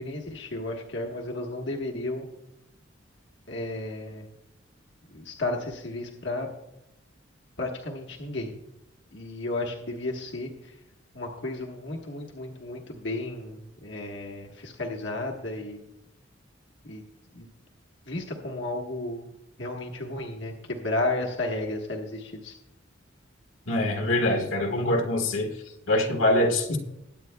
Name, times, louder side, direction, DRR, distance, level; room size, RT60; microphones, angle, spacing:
voice 1, 0.0-2.3 3.5-4.3 5.1-6.5 7.6-8.5 9.1-10.8 11.1-15.8 16.8-17.0 17.3-17.5 18.0-19.2 19.6-22.6, left 2 dB, 65° left, 1 dB, 1.3 m, -33 dB
voice 2, 23.7-25.5 25.9-26.8, left 1 dB, 90° left, 2 dB, 1.6 m, -24 dB
21.5 x 9.0 x 2.2 m, 0.87 s
head